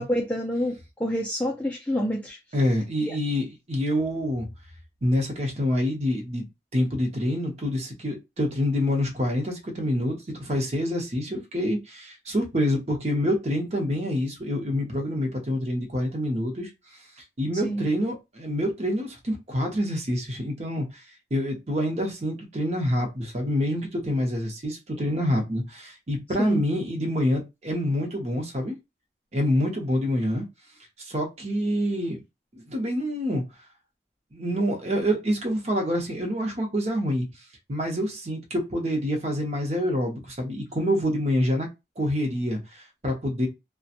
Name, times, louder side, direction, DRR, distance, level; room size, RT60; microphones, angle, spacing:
voice 1, 0.0-2.4 3.0-3.2 17.6-17.8 26.4-26.6, equal, 10° left, 0.3 m, -27 dB
voice 2, 2.5-4.5 5.0-6.4 6.7-16.7 17.4-21.0 21.3-28.7 29.3-30.4 31.0-32.2 32.5-33.4 34.3-37.3 37.7-41.7 42.0-43.5, equal, 35° right, 0.7 m, -26 dB
2.7 x 2.2 x 2.5 m
head